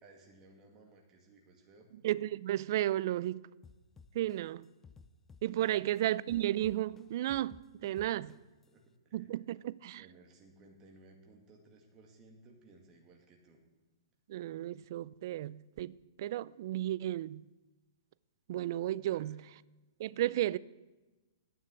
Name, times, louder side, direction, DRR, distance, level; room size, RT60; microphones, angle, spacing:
voice 1, 0.0-1.9 4.6-4.7 5.7-5.8 8.0-8.4 8.7-9.3 10.0-13.6 19.1-19.4, right 3 dB, 25° right, 2.1 m, -60 dB
voice 2, 2.0-3.4 4.1-4.6 5.4-8.3 9.1-10.0 14.3-17.4 18.5-19.4 20.0-20.6, right 13 dB, 55° right, 0.3 m, -33 dB
sound 1, 3.6-6.0 6.3-8.6, left 5 dB, 15° left, 0.5 m, -56 dB
9.5 x 7.2 x 8.2 m
hypercardioid pair, 130°, 2 cm